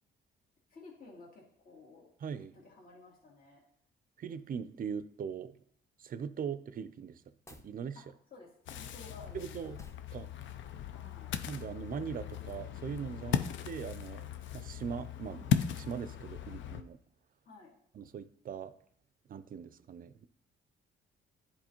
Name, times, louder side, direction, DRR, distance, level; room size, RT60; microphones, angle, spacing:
voice 1, 0.7-2.1 2.5-3.6 7.9-8.0 8.3-9.7 10.1-10.2 10.9-11.4 13.2-13.4 17.5-17.7, left 3 dB, 45° left, -4 dB, 2.1 m, -54 dB
voice 2, 2.2-2.6 4.2-5.6 6.0-7.2 7.5-8.0 9.3-9.8 10.1-10.3 11.5-14.3 14.5-17.0 17.9-18.7 19.3-20.3, right 7 dB, 45° right, 14 dB, 0.4 m, -40 dB
sound 1, 7.4-7.8 9.8-10.1, left 1 dB, 15° left, 0.7 m, -56 dB
Ocean, 8.7-16.8, left 9 dB, 75° left, 0.5 m, -37 dB
10.0 x 4.1 x 2.9 m, 0.67 s
cardioid pair, 90°, 20 cm